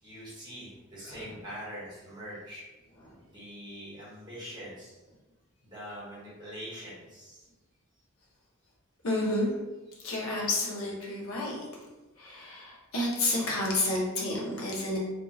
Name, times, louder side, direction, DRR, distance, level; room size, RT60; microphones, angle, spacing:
voice 1, 0.0-2.7 3.3-5.0 5.6-7.5 10.0-10.1, equal, 20° right, -8 dB, 1.3 m, -43 dB
voice 2, 9.0-9.5 10.0-11.7 12.2-15.0, left 2 dB, 75° left, -3 dB, 0.9 m, -30 dB
2.7 x 2.4 x 3.9 m, 1.2 s
head